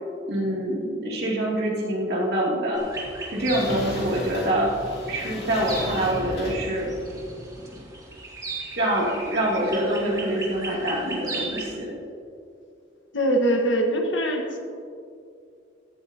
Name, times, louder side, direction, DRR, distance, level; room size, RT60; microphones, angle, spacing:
voice 1, 0.3-2.8 3.3-4.7 5.1-6.9 8.8-12.0, right 1 dB, 55° right, -4 dB, 2.7 m, -25 dB
sound 1, 2.7-11.7, right 2 dB, 20° right, 1.7 m, -38 dB
sound 2, 2.9-7.8, left 1 dB, 60° left, 2.7 m, -36 dB
voice 2, 13.1-14.6, right 1 dB, 85° left, 3 dB, 1.5 m, -22 dB
15.0 x 11.5 x 2.9 m, 2.4 s
head